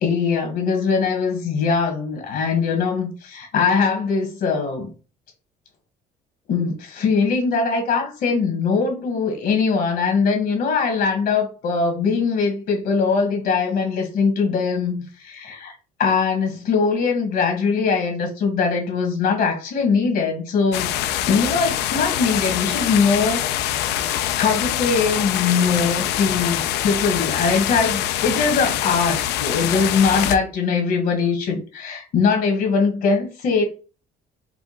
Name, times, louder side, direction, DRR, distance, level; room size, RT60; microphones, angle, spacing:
voice 1, 0.0-4.9 6.5-15.7 16.0-20.9 21.3-23.4 23.7-24.1 24.4-33.6, left 5 dB, 65° left, 1.4 m, -21 dB
sound 1, 20.7-30.4, left 12 dB, 85° left, 0.4 m, -24 dB
4.9 x 2.3 x 3.8 m
cardioid pair, 110°, 17 cm